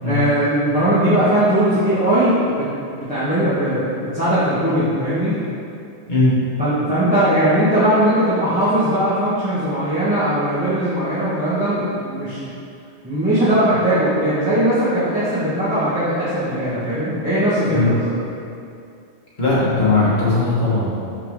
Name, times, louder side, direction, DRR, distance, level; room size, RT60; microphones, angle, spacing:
voice 1, 0.0-2.7 3.0-5.4 6.6-12.5 13.0-18.1, right 1 dB, 5° right, -14 dB, 1.3 m, -19 dB
voice 2, 19.4-21.0, left 2 dB, 40° left, -10 dB, 1.6 m, -18 dB
5.8 x 5.8 x 3.6 m, 2.5 s
omnidirectional pair, 1.2 m